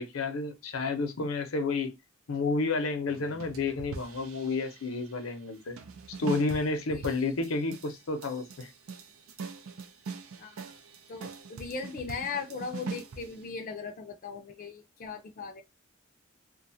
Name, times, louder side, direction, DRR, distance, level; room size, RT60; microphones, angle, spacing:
voice 1, 0.0-1.9 2.3-5.8 6.2-8.7, left 3 dB, 85° left, 0.7 m, -31 dB
sound 1, 3.1-5.1 5.8-13.5, right 4 dB, 90° right, 0.5 m, -42 dB
voice 2, 10.4-10.8 11.1-15.6, left 5 dB, 40° left, 0.4 m, -38 dB
2.5 x 2.3 x 2.6 m
head